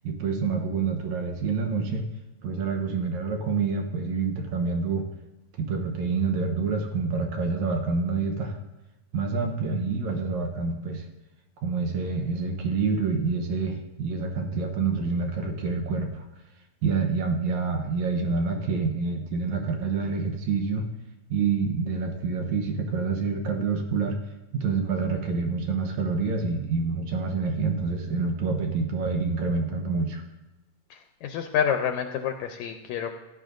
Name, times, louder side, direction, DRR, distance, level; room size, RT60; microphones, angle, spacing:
voice 1, 0.0-2.1 2.4-5.1 5.6-8.6 9.1-11.1 11.6-16.2 16.8-20.9 21.3-24.2 24.5-30.2, right 4 dB, 70° right, 3 dB, 2.2 m, -27 dB
voice 2, 30.9-33.1, left 8 dB, 80° left, 6 dB, 1.9 m, -28 dB
16.5 x 10.5 x 2.6 m, 1.0 s
omnidirectional pair, 3.5 m